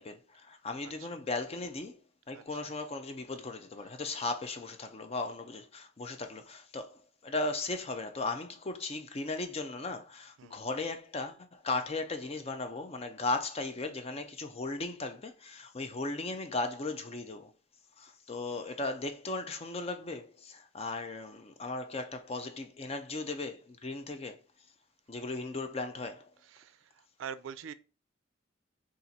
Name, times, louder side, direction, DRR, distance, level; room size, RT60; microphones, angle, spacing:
voice 1, 0.0-2.0 2.3-17.5 18.0-24.4 25.1-26.3, left 3 dB, 30° left, 0.5 m, -37 dB
voice 2, 0.8-1.2 2.3-2.7 10.4-10.6 11.7-11.9 25.2-25.5 26.4-27.7, right 7 dB, 80° right, 0.3 m, -46 dB
4.2 x 2.5 x 4.0 m
head